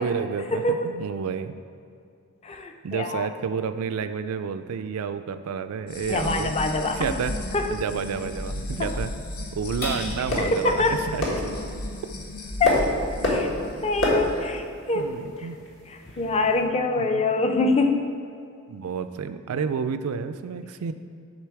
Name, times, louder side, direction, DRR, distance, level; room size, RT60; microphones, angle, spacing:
voice 1, 0.0-1.5 2.8-6.6 6.9-7.4 7.7-9.1 9.5-11.3 14.3-14.5 14.9-15.6 17.0-17.2 18.7-20.9, right 6 dB, 75° right, 10 dB, 0.4 m, -30 dB
voice 2, 2.4-3.3 6.1-7.1 7.5-7.7 10.4-11.0 12.6-12.8 13.2-13.5 13.8-15.1 16.2-18.1, left 3 dB, 30° left, 5 dB, 0.5 m, -24 dB
sound 1, 5.9-14.5, left 1 dB, 80° left, 0.9 m, -35 dB
sound 2, 7.8-16.6, left 1 dB, 60° left, 1.7 m, -31 dB
sound 3, 16.0-16.5 17.0-17.1 17.5-18.0, left 1 dB, 45° left, 1.9 m, -42 dB
10.5 x 3.8 x 4.7 m, 2.4 s
head